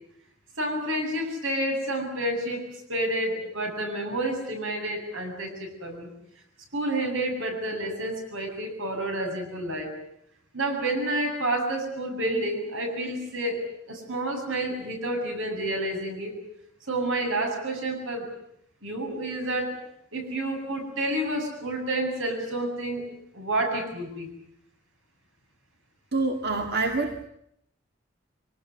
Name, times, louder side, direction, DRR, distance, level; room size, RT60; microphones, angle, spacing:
voice 1, 0.6-2.6 2.9-6.1 6.7-9.9 10.5-16.3 16.9-18.3 18.8-19.8 20.1-23.0 23.3-24.3, right 1 dB, 80° right, 3 dB, 7.9 m, -29 dB
voice 2, 26.1-27.2, right 3 dB, 55° right, 3 dB, 2.0 m, -26 dB
24.5 x 19.0 x 9.8 m, 0.74 s
head